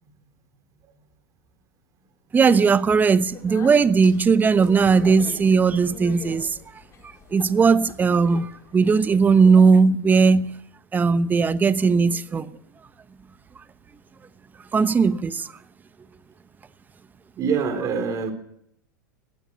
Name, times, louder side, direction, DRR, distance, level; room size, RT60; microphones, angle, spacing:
voice 1, 2.3-6.6 7.3-10.6 10.9-12.5 14.7-15.5, right 5 dB, 15° right, 0.9 m, -18 dB
Speech, 3.1-9.1, left 5 dB, 30° left, 5.5 m, -44 dB
voice 2, 17.4-18.3, right 6 dB, 35° right, 3.8 m, -24 dB
18.5 x 18.0 x 7.8 m
hypercardioid pair, 95°, 10 cm